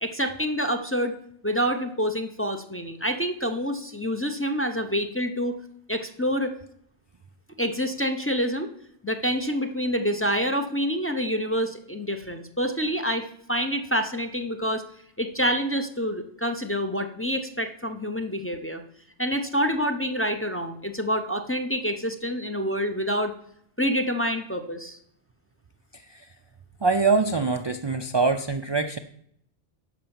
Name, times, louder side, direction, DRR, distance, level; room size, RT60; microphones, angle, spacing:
voice 1, 0.0-1.1 1.4-5.6 5.9-6.5 7.6-8.7 9.0-14.8 15.2-18.8 19.2-23.3 23.8-25.0, equal, 15° left, 4 dB, 0.6 m, -27 dB
voice 2, 25.9-26.3 26.8-29.0, right 4 dB, 45° right, 8 dB, 0.3 m, -24 dB
11.0 x 5.7 x 7.1 m, 0.70 s
omnidirectional pair, 1.1 m